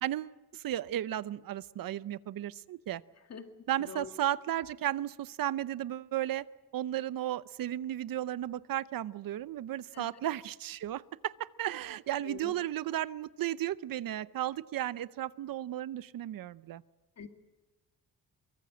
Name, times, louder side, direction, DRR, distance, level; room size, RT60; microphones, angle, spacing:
voice 1, 0.0-3.0 3.7-6.4 6.7-16.8, right 12 dB, 70° right, 16 dB, 0.7 m, -34 dB
voice 2, 3.8-4.1 9.9-10.2 12.1-12.5 17.2-17.3, left 6 dB, 45° left, 6 dB, 2.0 m, -44 dB
24.0 x 23.5 x 7.8 m, 1.1 s
cardioid pair, 140°, 36 cm